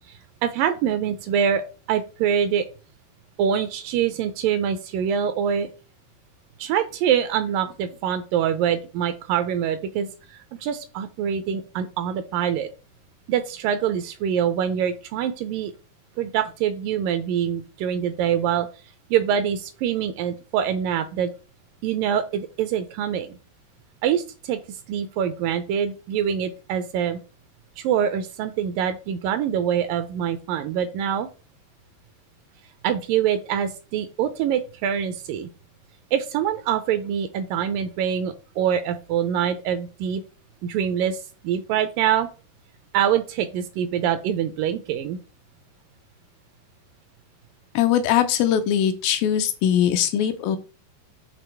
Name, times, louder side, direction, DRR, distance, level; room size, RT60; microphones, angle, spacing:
voice 1, 0.1-1.6 1.9-2.7 3.4-5.7 6.6-10.1 10.6-12.7 13.3-15.7 16.2-18.7 19.1-21.3 21.8-23.4 24.0-24.6 24.9-27.2 27.8-31.3 32.8-35.5 36.1-40.2 40.6-42.3 42.9-45.2, right 9 dB, 80° right, 10 dB, 2.1 m, -24 dB
voice 2, 47.8-50.6, left 10 dB, 85° left, 9 dB, 2.3 m, -21 dB
7.9 x 2.9 x 4.4 m, 0.34 s
omnidirectional pair, 4.3 m